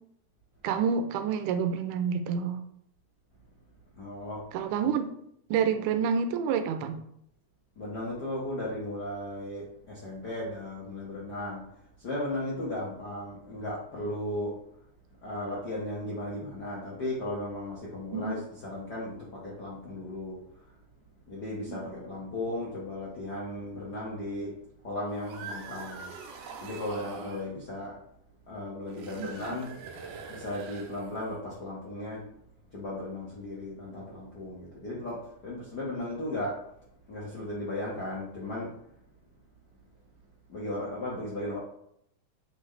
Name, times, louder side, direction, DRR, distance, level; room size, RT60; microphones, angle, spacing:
voice 1, 0.6-2.6 4.5-5.1 5.5-7.0 18.1-18.4 21.7-21.8 29.2-29.6, right 6 dB, 85° right, 8 dB, 2.1 m, -28 dB
voice 2, 3.9-4.5 4.8-4.9 7.8-14.6 15.2-20.7 21.3-24.5 24.8-28.0 28.5-29.8 30.3-32.3 32.7-36.6 37.1-38.8 40.5-41.6, left 1 dB, 70° left, -6 dB, 1.0 m, -36 dB
sound 1, 25.1-27.5 28.9-31.3, right 5 dB, 70° right, 1.7 m, -43 dB
7.6 x 3.8 x 3.2 m, 0.73 s
omnidirectional pair, 3.6 m